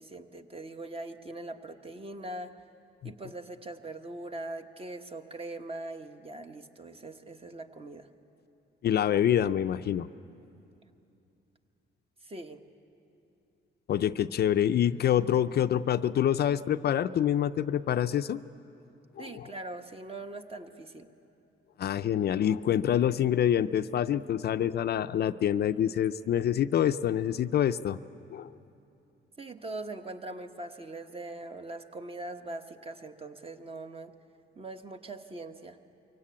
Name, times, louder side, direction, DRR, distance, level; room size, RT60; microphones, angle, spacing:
voice 1, 0.0-2.5 3.0-8.1 12.2-12.6 19.2-21.1 29.4-34.1 34.5-35.8, right 2 dB, 30° right, 6 dB, 1.2 m, -41 dB
voice 2, 8.8-10.1 13.9-18.4 19.2-19.5 21.8-28.0 28.3-28.5, left 10 dB, 55° left, 11 dB, 0.5 m, -26 dB
23.5 x 17.5 x 8.6 m, 2.8 s
cardioid pair, 90°, 20 cm